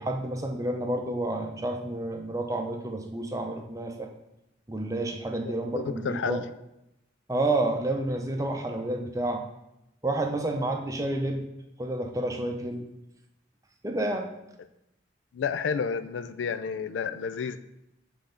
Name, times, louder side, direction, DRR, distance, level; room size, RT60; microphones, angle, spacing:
voice 1, 0.0-4.1 4.7-6.4 7.3-9.4 10.0-11.5 11.8-12.9 13.8-14.3, right 1 dB, 20° right, 3 dB, 0.6 m, -30 dB
voice 2, 5.4-6.4 15.3-17.6, left 6 dB, 85° left, 12 dB, 0.4 m, -31 dB
7.5 x 3.4 x 5.1 m, 0.87 s
head